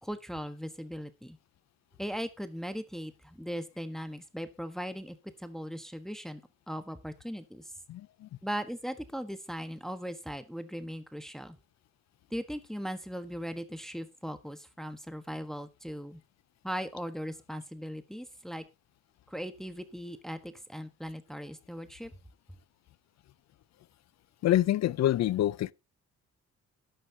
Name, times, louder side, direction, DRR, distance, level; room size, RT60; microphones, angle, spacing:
voice 1, 0.0-1.4 2.0-6.4 6.7-7.6 8.4-11.6 12.3-16.2 16.6-18.6 19.3-22.1, equal, ahead, 1.3 m, -38 dB
voice 2, 7.9-8.3 24.4-25.7, left 13 dB, 60° left, 0.6 m, -26 dB
13.0 x 11.5 x 2.8 m
cardioid pair, 90°, 30 cm